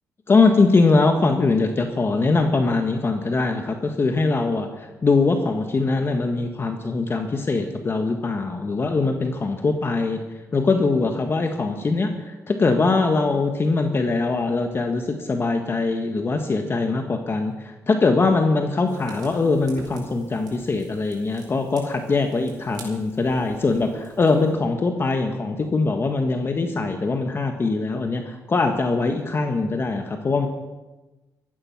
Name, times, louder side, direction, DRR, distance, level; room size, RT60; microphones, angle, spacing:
voice 1, 0.3-10.2 10.5-30.5, left 3 dB, 35° left, 5 dB, 1.5 m, -22 dB
Fire, 18.9-24.5, right 4 dB, 80° right, 4.8 m, -46 dB
14.5 x 14.0 x 6.0 m, 1.1 s
cardioid pair, 90°, 7 cm